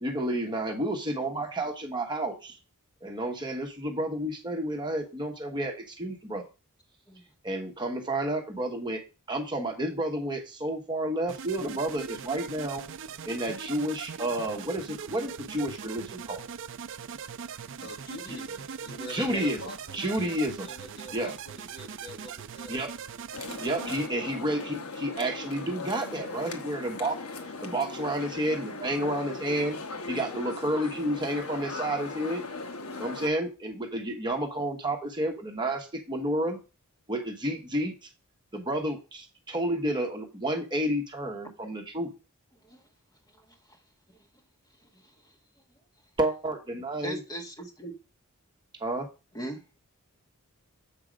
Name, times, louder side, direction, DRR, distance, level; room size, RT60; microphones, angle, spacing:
voice 1, 0.0-2.6 3.0-6.4 7.4-9.0 9.3-12.8 13.3-16.5 18.3-18.4 19.1-19.6 19.9-20.7 21.1-21.3 22.7-22.9 23.6-27.2 27.6-29.8 30.1-32.4 33.0-36.6 37.1-38.1 38.5-42.1 46.2-47.2 48.8-49.1, right 1 dB, 20° right, 2 dB, 1.2 m, -30 dB
sound 1, 11.3-24.1, right 7 dB, 60° right, 0.5 m, -41 dB
voice 2, 17.8-23.2 23.9-24.5, left 1 dB, 45° left, 3 dB, 1.6 m, -45 dB
sound 2, 23.3-33.3, left 3 dB, 70° left, 1.1 m, -39 dB
voice 3, 47.0-47.9 49.3-49.6, right 1 dB, 20° left, 3 dB, 1.3 m, -38 dB
7.6 x 4.7 x 5.1 m, 0.30 s
head